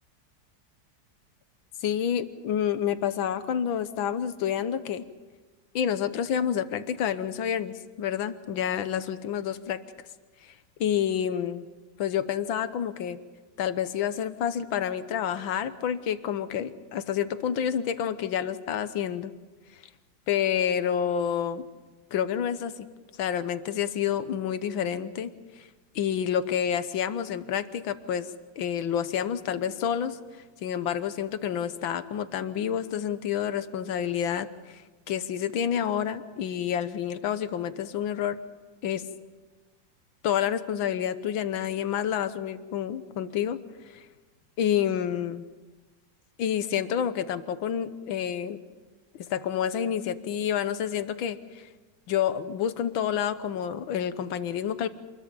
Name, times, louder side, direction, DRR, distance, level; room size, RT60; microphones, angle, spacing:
voice 1, 1.8-5.1 5.8-9.8 10.4-10.6 10.8-11.7 12.0-13.2 13.6-19.3 20.3-21.7 22.1-22.9 23.2-25.7 26.0-28.3 28.6-38.4 38.8-39.0 40.2-44.1 44.6-45.4 46.4-48.6 49.1-51.7 52.1-54.9, left 9 dB, 90° left, 12 dB, 1.8 m, -29 dB
27.0 x 21.5 x 5.3 m, 1.3 s
omnidirectional pair, 2.1 m